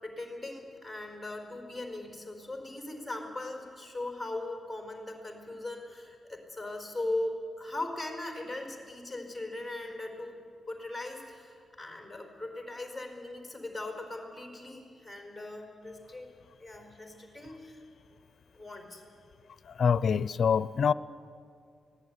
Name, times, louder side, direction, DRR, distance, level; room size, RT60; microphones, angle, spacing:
voice 1, 0.0-16.3 16.6-17.8 18.5-19.0, left 2 dB, 5° right, 2 dB, 4.4 m, -39 dB
voice 2, 19.8-20.9, left 6 dB, 55° left, 18 dB, 0.5 m, -25 dB
25.0 x 18.0 x 9.7 m, 2.4 s
wide cardioid pair, 145°, 0 cm